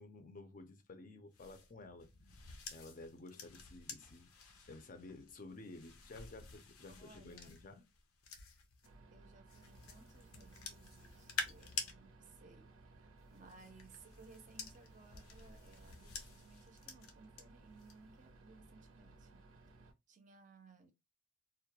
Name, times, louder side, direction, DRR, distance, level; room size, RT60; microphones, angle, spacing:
voice 1, 0.0-2.1 2.7-7.8, left 2 dB, 40° left, 0.4 m, -53 dB
sound 1, 1.3-8.9 9.5-11.9 13.2-17.4 17.8-18.1, left 5 dB, 85° left, 0.6 m, -49 dB
voice 2, 6.9-7.6 9.1-19.5 20.1-20.9, right 4 dB, 35° right, 0.5 m, -61 dB
sound 2, 8.8-19.9, right 3 dB, 90° right, 0.5 m, -61 dB
2.3 x 2.1 x 2.7 m
head